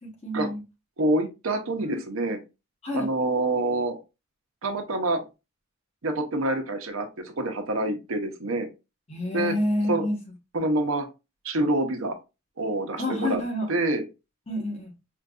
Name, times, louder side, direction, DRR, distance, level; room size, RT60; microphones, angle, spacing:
voice 1, 0.0-0.6 1.8-2.0 2.8-3.1 9.1-10.2 10.5-10.6 13.0-13.7 14.5-14.9, left 1 dB, 30° left, 1.1 m, -28 dB
voice 2, 1.0-2.4 2.9-4.0 4.6-5.2 6.0-8.7 9.3-9.5 9.9-10.1 10.5-11.1 11.4-12.2 12.6-13.4 13.7-14.1, right 2 dB, 75° right, 0.7 m, -26 dB
4.5 x 2.5 x 2.3 m
head